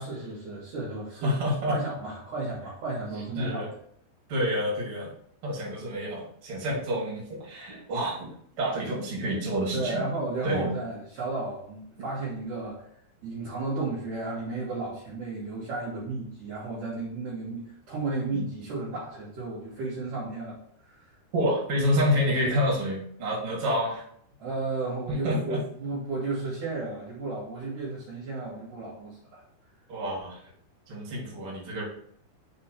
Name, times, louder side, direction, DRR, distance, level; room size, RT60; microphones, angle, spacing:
voice 1, 0.0-1.4 1.7-3.7 9.7-12.8 13.2-20.6 20.8-21.1 24.4-29.4, right 3 dB, 80° right, -7 dB, 1.8 m, -33 dB
voice 2, 1.2-1.7 3.3-3.7 4.3-5.1 5.4-8.3 8.6-10.0 10.4-10.7 21.3-24.0 25.2-25.6 29.9-30.4 30.9-31.8, equal, 55° right, -4 dB, 1.6 m, -28 dB
7.2 x 3.4 x 4.3 m, 0.66 s
omnidirectional pair, 6.0 m